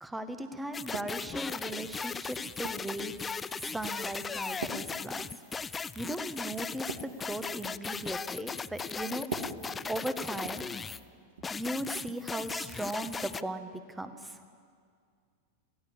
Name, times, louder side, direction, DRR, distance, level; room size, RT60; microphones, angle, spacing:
voice 1, 0.0-3.1 3.6-5.3 5.9-9.3 9.9-10.6 11.5-14.4, right 1 dB, 5° right, 9 dB, 1.4 m, -37 dB
sound 1, 0.7-11.0 11.4-13.4, left 5 dB, 15° left, 0.4 m, -37 dB
sound 2, 0.9-1.4 2.1-3.0 3.6-3.9 4.6-5.8 6.1-6.3 6.6-7.9 9.2-11.0 11.3-11.6 12.7-12.8, right 4 dB, 65° right, 2.0 m, -43 dB
24.0 x 16.5 x 7.3 m, 2.1 s
figure-of-eight pair, 90°, 0 cm